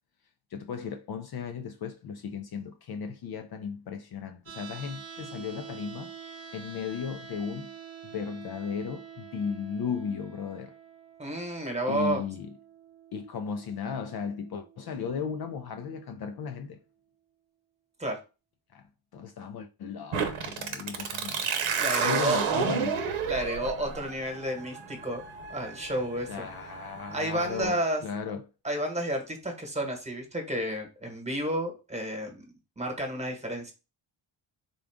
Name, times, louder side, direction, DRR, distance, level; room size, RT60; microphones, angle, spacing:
voice 1, 0.5-6.1 6.5-7.7 8.1-10.7 11.9-12.5 13.1-16.8 18.7-18.9 19.1-21.4 22.0-23.0 26.3-28.4, left 6 dB, 50° left, 0.5 m, -35 dB
sound 1, 4.5-16.5, right 7 dB, 30° right, 0.9 m, -48 dB
voice 2, 11.2-12.2 18.0-18.2 21.8-22.4 23.3-25.2 25.5-26.4 27.1-28.0 28.6-32.4 32.8-33.7, right 1 dB, 15° right, 1.2 m, -31 dB
sound 2, 20.1-27.6, right 6 dB, 75° right, 0.9 m, -31 dB
3.7 x 2.3 x 3.5 m
cardioid pair, 90°, 49 cm